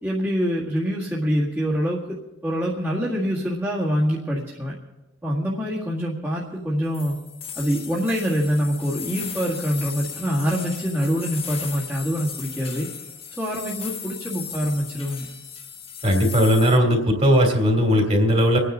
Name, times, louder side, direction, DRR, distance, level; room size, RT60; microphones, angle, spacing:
voice 1, 0.0-2.0 2.4-4.7 5.2-7.2 7.5-12.9 13.4-15.2, equal, 10° right, -8 dB, 1.9 m, -25 dB
sound 1, 6.9-16.8, left 7 dB, 30° left, 1.2 m, -36 dB
voice 2, 16.0-18.6, equal, 35° right, 1 dB, 2.9 m, -18 dB
27.0 x 9.5 x 3.8 m, 1.0 s
head